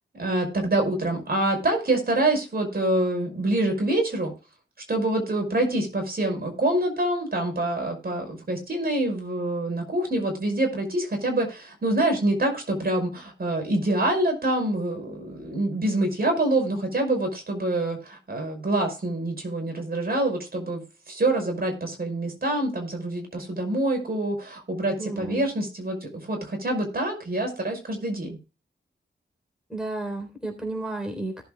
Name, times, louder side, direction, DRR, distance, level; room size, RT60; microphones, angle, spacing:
voice 1, 0.1-4.3 4.9-28.4, right 1 dB, 50° right, 3 dB, 5.7 m, -26 dB
voice 2, 25.0-25.5 29.7-31.4, right 2 dB, 5° right, 4 dB, 3.5 m, -32 dB
17.5 x 7.8 x 2.2 m, 0.30 s
wide cardioid pair, 90°, 20 cm